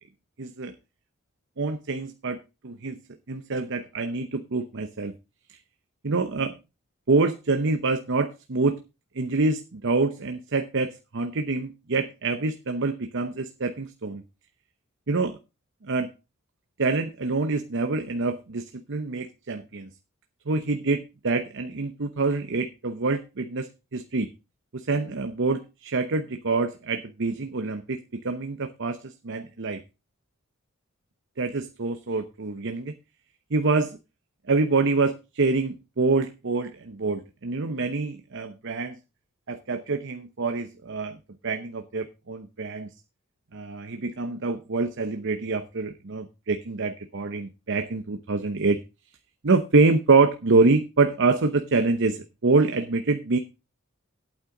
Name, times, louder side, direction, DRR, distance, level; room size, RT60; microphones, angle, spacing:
voice 1, 0.4-0.7 1.6-3.0 3.3-5.1 5.5-5.6 6.0-6.5 7.1-8.8 9.1-14.2 15.1-15.4 15.9-16.1 16.8-19.9 20.5-24.3 24.7-28.0 28.2-29.8 31.4-32.9 33.5-34.0 34.5-39.0 39.5-41.2 41.4-42.9 43.5-48.8 49.4-53.4, right 3 dB, 60° right, 8 dB, 0.8 m, -26 dB
11.5 x 8.8 x 3.8 m, 0.28 s
head